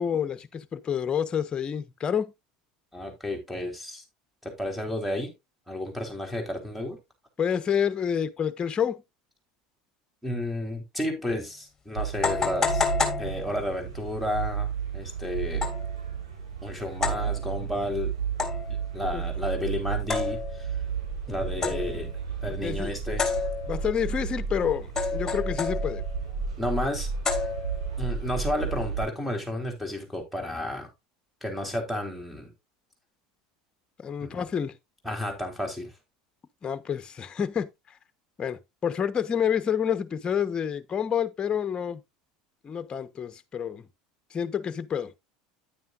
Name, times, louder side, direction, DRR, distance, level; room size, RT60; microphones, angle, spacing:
voice 1, 0.0-2.3 7.4-9.0 19.1-19.2 21.6-21.9 22.6-23.0 23.7-26.0 34.0-34.8 36.6-38.0 38.4-42.0 42.6-43.9 44.3-45.1, left 8 dB, 30° left, 1.1 m, -28 dB
voice 2, 2.9-4.0 4.4-5.3 5.7-7.0 10.2-12.9 13.2-15.7 16.6-18.1 18.9-20.7 21.3-22.1 22.4-23.2 26.6-27.1 28.0-30.9 31.4-32.5 34.2-34.4 35.0-35.9, left 1 dB, ahead, 3.9 m, -32 dB
sound 1, 11.2-11.3 12.2-13.9 15.6-15.9 17.0-17.3 18.4-18.8 20.1-20.7 21.6-22.0 23.2-23.9 25.0-26.1 27.2-27.9, left 5 dB, 15° left, 3.3 m, -30 dB
sound 2, 12.0-29.1, right 6 dB, 85° right, 6.7 m, -32 dB
10.0 x 9.2 x 2.5 m
hypercardioid pair, 85°, 3 cm